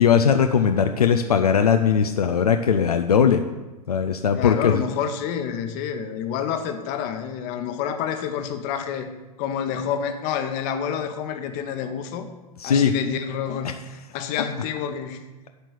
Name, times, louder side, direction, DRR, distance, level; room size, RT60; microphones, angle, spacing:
voice 1, 0.0-3.4 3.9-4.8 12.6-12.9, left 7 dB, 75° left, 6 dB, 0.6 m, -19 dB
voice 2, 4.3-9.1 9.4-12.3 12.6-15.2, left 8 dB, 40° left, 7 dB, 1.1 m, -28 dB
11.5 x 4.5 x 8.1 m, 1.1 s
figure-of-eight pair, 90°, 20 cm